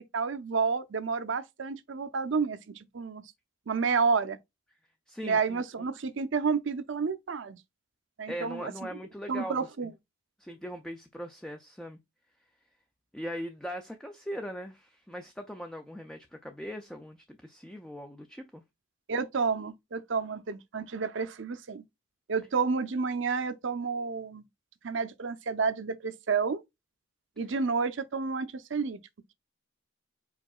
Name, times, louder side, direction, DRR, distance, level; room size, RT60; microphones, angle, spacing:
voice 1, 0.1-2.6 2.9-3.2 3.7-4.4 5.2-7.6 8.2-8.9 9.3-9.9 19.1-21.8 22.3-24.4 24.8-26.6 27.4-29.0, right 5 dB, 65° right, 0.6 m, -30 dB
voice 2, 5.1-5.9 8.3-9.9 10.4-12.0 13.1-18.6, equal, 5° left, 0.4 m, -40 dB
4.8 x 4.6 x 2.3 m
head